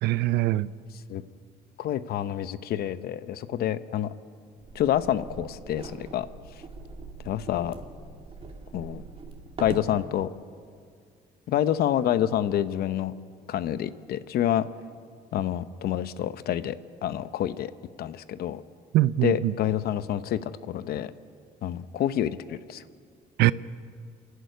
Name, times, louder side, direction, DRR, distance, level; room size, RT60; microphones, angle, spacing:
voice 1, 0.0-0.7 18.9-19.5 23.4-23.5, right 16 dB, 75° right, 18 dB, 0.6 m, -22 dB
voice 2, 1.8-4.1 4.7-6.3 7.2-7.8 8.7-9.0 9.6-10.3 11.5-13.1 13.5-14.6 15.3-16.8 17.0-17.7 18.0-18.6 19.2-21.1 21.6-22.8, left 11 dB, 65° left, 14 dB, 0.8 m, -27 dB
sound 1, 4.6-9.9, right 4 dB, 35° right, 2.6 m, -42 dB
27.5 x 11.5 x 9.3 m, 2.1 s
cardioid pair, 110°, 17 cm